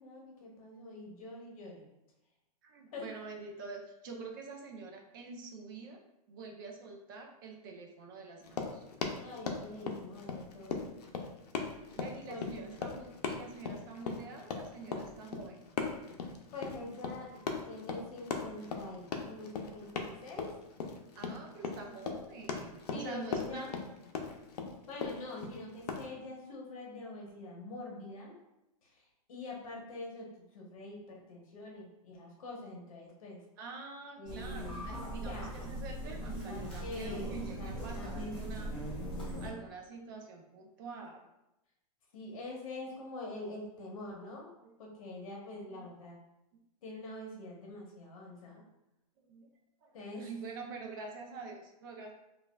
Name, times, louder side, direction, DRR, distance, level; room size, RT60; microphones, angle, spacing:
voice 1, 0.0-1.9 2.9-3.1 9.2-10.8 12.3-12.6 16.5-20.5 22.9-23.7 24.9-28.3 28.8-30.3 30.5-33.4 34.2-34.8 35.2-35.5 36.8-38.7 42.1-44.5 44.8-46.2 46.8-48.6 49.9-50.3, left 2 dB, 60° left, -2 dB, 1.0 m, -45 dB
voice 2, 2.6-6.0 6.3-8.8 12.0-15.6 21.2-23.7 33.6-38.8 39.4-41.2 44.6-44.7 45.6-45.9 46.5-46.6 49.3-49.5 49.8-49.9 50.2-52.1, right 4 dB, 35° right, 2 dB, 0.5 m, -46 dB
Run, 8.4-26.1, left 5 dB, 85° left, 0.6 m, -38 dB
sound 1, 34.3-39.5, right 1 dB, 5° left, 1.3 m, -40 dB
5.3 x 2.4 x 2.2 m, 0.91 s
supercardioid pair, 170°, 20 cm